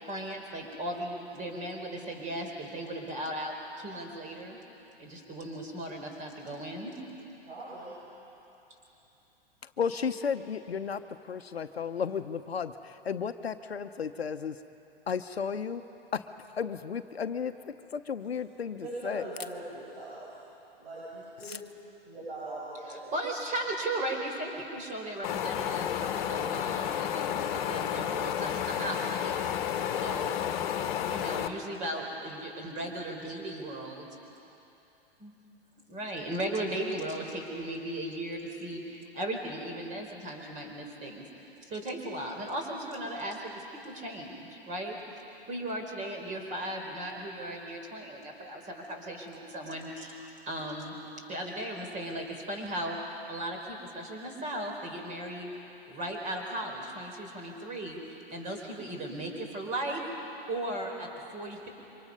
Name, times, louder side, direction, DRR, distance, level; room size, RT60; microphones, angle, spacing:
voice 1, 0.1-4.6 5.0-7.0 22.9-29.4 30.0-30.4 31.0-34.1 35.2-35.3 35.9-41.3 41.7-45.0 45.5-51.0 51.3-55.5 55.9-60.0 60.5-61.7, right 1 dB, 25° right, 2 dB, 4.4 m, -37 dB
voice 2, 7.5-7.9 18.2-18.3 18.8-20.2 20.8-21.6 22.0-23.1, right 2 dB, 65° right, -9 dB, 7.7 m, -41 dB
voice 3, 9.8-11.0 11.3-12.7 13.1-14.5 15.1-15.8 16.6-17.5 17.9-19.2, left 6 dB, 80° left, 9 dB, 0.9 m, -33 dB
Wind, 25.2-31.5, left 10 dB, 50° left, 1.4 m, -31 dB
27.0 x 24.5 x 5.5 m, 3.0 s
figure-of-eight pair, 110°, 31 cm